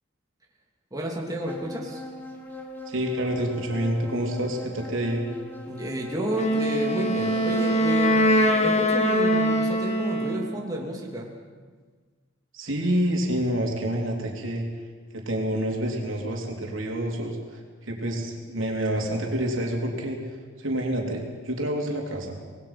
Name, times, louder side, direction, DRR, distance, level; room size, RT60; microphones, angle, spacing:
voice 1, 0.9-2.0 5.7-11.3, equal, 20° right, -1 dB, 2.8 m, -31 dB
sound 1, 1.5-8.9, left 1 dB, 10° left, 2.4 m, -41 dB
voice 2, 2.9-5.3 12.5-14.6 15.1-20.2 20.6-22.4, right 1 dB, 75° right, 0 dB, 3.7 m, -28 dB
Wind instrument woodwind instrument, 6.3-10.6, equal, 35° left, 1.9 m, -22 dB
26.0 x 19.5 x 5.9 m, 1.5 s
head